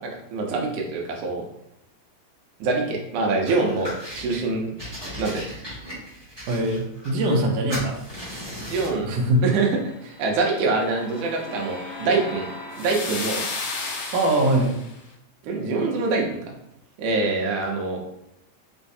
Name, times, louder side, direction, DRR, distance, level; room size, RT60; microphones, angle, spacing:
voice 1, 0.0-1.4 2.6-4.7 5.2-5.4 8.6-9.2 9.4-9.7 10.0-12.5 12.8-13.4 15.4-16.4 17.0-18.0, right 3 dB, 90° right, 0 dB, 2.3 m, -25 dB
sound 1, 3.5-4.4 4.8-7.4 7.7-9.0, equal, 15° right, 0.9 m, -37 dB
voice 2, 6.5-8.0 9.0-9.4 14.1-14.8, right 1 dB, 75° right, 1 dB, 1.6 m, -22 dB
sound 2, 10.3-14.9, left 3 dB, 75° left, 1.3 m, -34 dB
5.5 x 3.1 x 2.7 m, 0.79 s
omnidirectional pair, 3.4 m